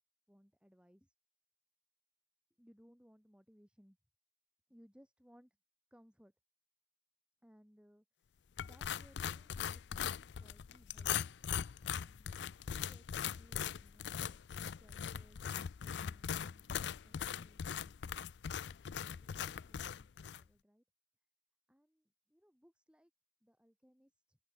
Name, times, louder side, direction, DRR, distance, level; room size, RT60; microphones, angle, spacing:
voice 1, 0.3-1.1 2.6-4.0 4.7-5.6 5.9-6.3 7.4-11.3 11.8-14.4 14.8-20.8 21.7-23.1 23.4-24.4, equal, 5° right, 5.7 m, -66 dB
sound 1, 8.6-20.4, left 8 dB, 75° left, 0.4 m, -40 dB
open air
head